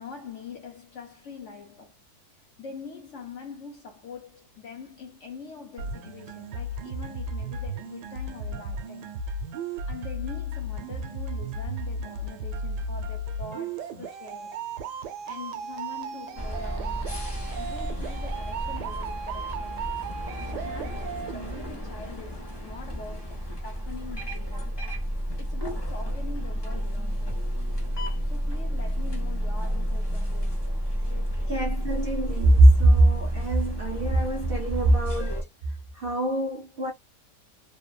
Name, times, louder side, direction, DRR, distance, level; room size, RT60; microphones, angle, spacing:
voice 1, 0.0-2.0 2.4-9.1 9.9-14.6 15.3-20.1 20.4-24.8 25.4-27.5 28.2-30.8 31.0-31.8, left 5 dB, 65° left, 0.7 m, -43 dB
sound 1, 5.8-21.8, right 2 dB, 85° right, 1.2 m, -35 dB
sound 2, 16.3-35.4, equal, 45° left, 0.3 m, -31 dB
voice 2, 31.5-35.4 35.9-36.9, right 1 dB, 65° right, 0.5 m, -21 dB
3.1 x 2.1 x 2.3 m
omnidirectional pair, 1.8 m